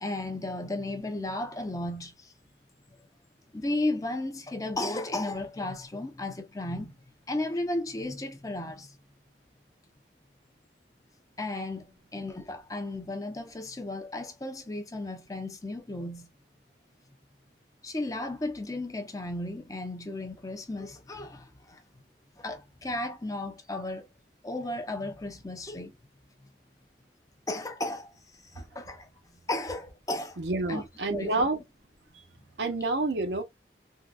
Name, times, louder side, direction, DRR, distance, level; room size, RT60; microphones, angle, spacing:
voice 1, 0.0-2.3 3.5-6.9 7.3-9.0 11.4-11.9 12.1-16.3 17.8-21.8 22.4-24.1 24.4-26.0 27.5-29.1 29.5-30.4 30.7-30.8 31.1-31.5, left 2 dB, 20° left, 0.5 m, -34 dB
voice 2, 30.4-31.6 32.6-33.4, right 2 dB, 75° right, 0.8 m, -28 dB
3.6 x 2.2 x 2.3 m
head